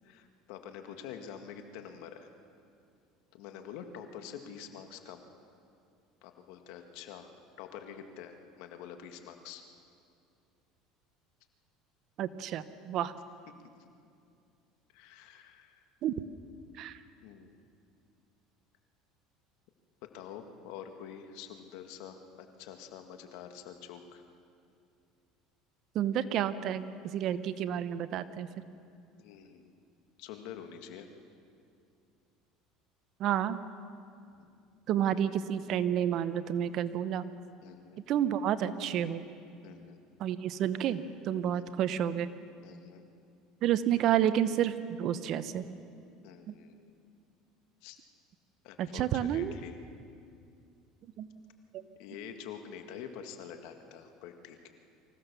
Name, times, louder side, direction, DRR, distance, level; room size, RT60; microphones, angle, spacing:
voice 1, 0.0-2.3 3.3-5.2 6.2-7.3 7.6-9.6 13.8-13.9 14.9-15.8 17.2-17.5 20.1-24.2 29.2-29.7 30.2-31.1 34.3-34.5 37.6-38.0 39.6-40.0 41.5-41.6 42.6-43.0 46.2-47.0 47.8-48.0 48.6-49.8 52.0-54.7, left 8 dB, 75° left, 6 dB, 1.9 m, -47 dB
voice 2, 12.2-13.1 16.0-16.1 16.8-17.0 25.9-26.8 27.1-28.5 33.2-33.6 34.9-37.3 38.1-39.2 40.2-42.3 43.6-44.7 45.0-45.6 46.5-46.6 48.8-49.5 51.2-51.3, right 10 dB, 55° right, 13 dB, 1.0 m, -30 dB
25.0 x 16.0 x 7.0 m, 2.5 s
supercardioid pair, 110°, 0 cm